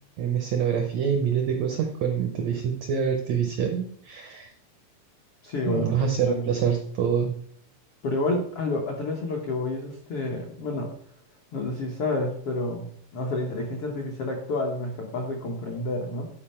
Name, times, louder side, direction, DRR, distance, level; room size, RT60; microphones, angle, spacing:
voice 1, 0.2-4.5 5.7-7.3, right 7 dB, 85° right, 4 dB, 1.5 m, -26 dB
voice 2, 5.4-6.0 6.3-6.5 8.0-10.9 11.5-12.8 13.1-16.3, left 2 dB, 80° left, 0 dB, 1.2 m, -29 dB
11.0 x 4.7 x 4.3 m, 0.62 s
omnidirectional pair, 4.1 m